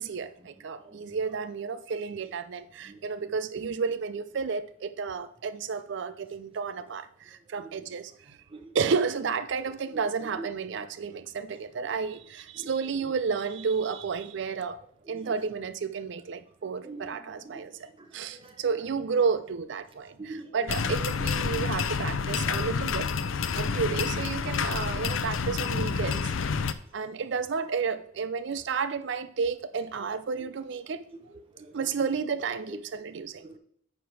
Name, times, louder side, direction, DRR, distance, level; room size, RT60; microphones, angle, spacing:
voice 1, 0.0-8.4 8.7-14.8 15.1-17.7 18.1-23.1 23.5-26.3 26.9-31.0 31.7-33.4, right 5 dB, 60° right, 11 dB, 0.4 m, -31 dB
voice 2, 8.5-9.0 9.9-10.5 12.6-13.1 15.0-15.4 16.8-17.2 17.4-17.6 18.3-18.5 20.2-21.0 29.7-29.8 30.4-30.5 31.3-32.3 32.7-32.8 33.4-33.6, right 2 dB, 25° right, 4 dB, 0.9 m, -44 dB
sound 1, 20.7-26.7, left 5 dB, 75° left, 0.5 m, -29 dB
9.5 x 3.6 x 6.1 m, 0.66 s
head